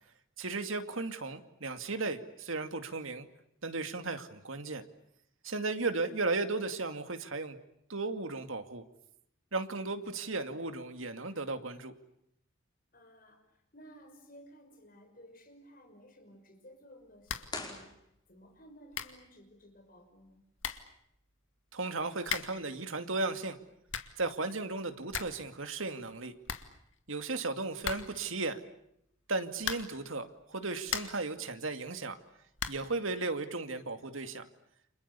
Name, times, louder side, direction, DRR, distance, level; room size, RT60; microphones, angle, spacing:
voice 1, 0.4-3.3 3.6-4.8 5.4-7.6 7.9-8.8 9.5-11.9 21.7-23.6 24.2-26.3 27.1-28.6 29.3-32.2 32.7-34.4, right 3 dB, 75° right, 8 dB, 2.4 m, -35 dB
voice 2, 12.9-13.5 13.7-18.0 18.3-20.4, equal, 45° left, 6 dB, 5.8 m, -56 dB
sound 1, 17.2-17.6 17.9-18.0 18.6-18.7 18.9-19.3 20.2-20.3 20.6-21.0 22.2-22.7 23.6-24.2 24.6-24.7 24.9-25.5 25.7-25.8 26.1-26.2 26.4-27.2 27.8-28.3 29.6-30.1 30.6-31.3 32.6-33.0, left 7 dB, 70° left, 2.2 m, -38 dB
sound 2, 17.5-18.7, left 3 dB, 20° left, 5.1 m, -44 dB
30.0 x 27.5 x 7.0 m, 0.76 s
head